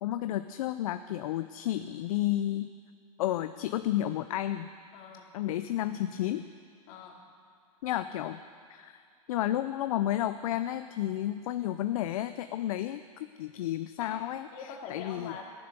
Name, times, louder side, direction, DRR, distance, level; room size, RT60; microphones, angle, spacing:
voice 1, 0.0-2.7 3.2-4.7 5.3-6.5 7.8-8.4 8.7-9.0 9.3-13.0 13.4-14.5 14.9-15.4, left 13 dB, 70° left, 11 dB, 0.5 m, -31 dB
voice 2, 4.9-5.3 6.9-7.2 14.0-14.2 14.5-15.4, left 6 dB, 50° left, 0 dB, 2.7 m, -44 dB
15.0 x 11.0 x 6.7 m, 2.4 s
hypercardioid pair, 130°, 19 cm